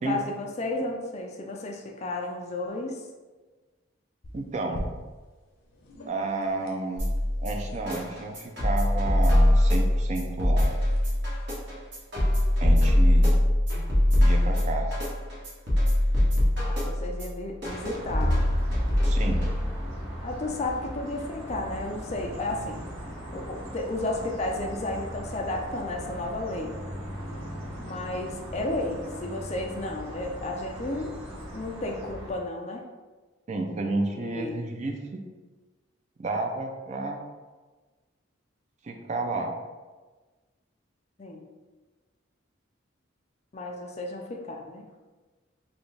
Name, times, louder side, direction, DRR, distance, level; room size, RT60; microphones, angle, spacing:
voice 1, 0.0-3.0 16.6-18.4 20.2-22.8 23.3-26.8 27.8-31.1 31.5-32.8 34.1-34.6 41.2-41.4 43.5-44.8, left 2 dB, 35° left, 2 dB, 0.4 m, -33 dB
sound 1, 4.2-12.7, left 1 dB, 80° left, 0.7 m, -45 dB
voice 2, 4.3-4.9 6.1-7.1 7.4-10.7 12.6-13.4 14.2-15.0 19.0-19.4 33.5-35.2 36.2-37.2 38.8-39.5, right 3 dB, 35° right, 3 dB, 0.4 m, -31 dB
sound 2, 7.0-20.0, left 1 dB, 60° right, 1.2 m, -23 dB
sound 3, 17.6-32.3, equal, 90° right, 1.3 m, -39 dB
4.2 x 2.3 x 3.2 m, 1.3 s
head